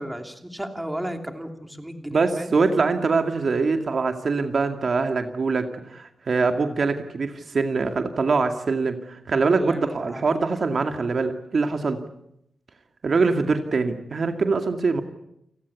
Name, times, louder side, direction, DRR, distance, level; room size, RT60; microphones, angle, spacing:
voice 1, 0.0-2.5 9.5-10.3, right 1 dB, 10° right, 5 dB, 2.9 m, -34 dB
voice 2, 2.1-12.0 13.0-15.0, right 4 dB, 55° right, 6 dB, 2.1 m, -23 dB
29.5 x 18.5 x 8.3 m, 0.80 s
wide cardioid pair, 110°, 0 cm